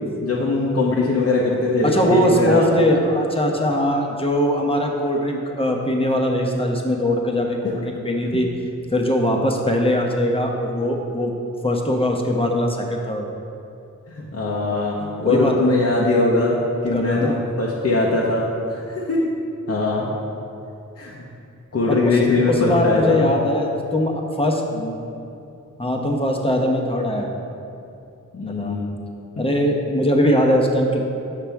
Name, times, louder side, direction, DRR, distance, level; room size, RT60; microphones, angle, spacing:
voice 1, 0.2-2.7 8.3-8.4 14.1-16.6 16.8-19.2 19.7-20.1 21.0-21.2 21.7-23.2 24.7-24.9 28.3-28.8, left 2 dB, 50° left, -4 dB, 0.9 m, -21 dB
voice 2, 1.8-8.5 8.9-11.3 11.6-13.3 15.2-15.5 16.9-17.3 21.9-22.1 22.6-24.6 25.8-27.3 28.5-28.8 29.4-31.1, left 1 dB, 15° left, 1 dB, 1.0 m, -21 dB
7.4 x 5.9 x 3.5 m, 2.7 s
cardioid pair, 45°, 32 cm